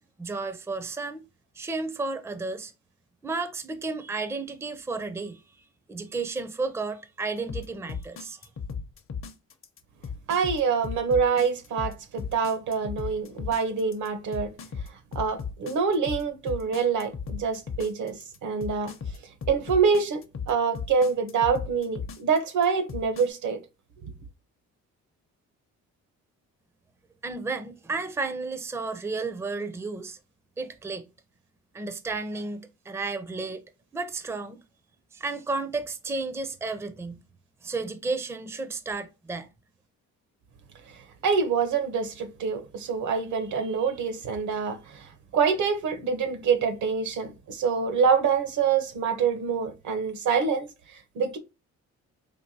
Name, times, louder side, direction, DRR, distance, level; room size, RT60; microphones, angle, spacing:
voice 1, 0.2-1.2 1.5-2.7 3.2-5.4 5.9-8.4 27.2-30.2 30.6-31.1 31.7-33.6 33.9-34.6 35.1-37.2 37.6-39.5, right 3 dB, 10° right, 0.5 m, -32 dB
sound 1, 7.5-23.3, left 6 dB, 45° left, 0.7 m, -36 dB
voice 2, 10.3-14.5 15.1-18.9 19.5-23.6 41.2-51.4, right 6 dB, 75° right, 0.9 m, -26 dB
4.5 x 2.7 x 2.6 m
cardioid pair, 90°, 30 cm